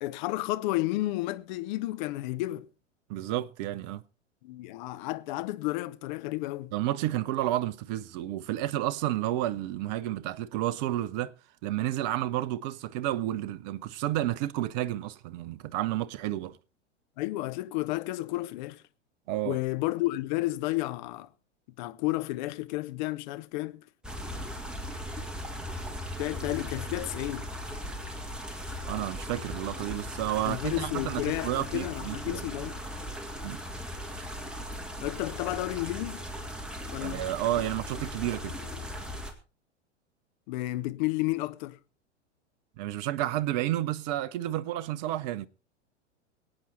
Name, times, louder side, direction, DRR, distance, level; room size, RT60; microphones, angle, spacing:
voice 1, 0.0-2.7 4.4-6.7 17.2-18.8 19.4-21.3 21.8-23.8 26.2-27.5 30.4-32.8 35.0-36.3 36.9-37.2 40.5-41.8, left 18 dB, 40° left, 0.8 m, -32 dB
voice 2, 3.1-4.0 6.7-11.3 11.6-16.6 19.3-19.6 28.8-32.4 33.4-33.6 37.0-38.6 42.8-45.5, right 14 dB, 35° right, 0.8 m, -31 dB
sound 1, 24.0-39.3, equal, ahead, 2.0 m, -38 dB
22.5 x 9.0 x 4.1 m
figure-of-eight pair, 95°, 36 cm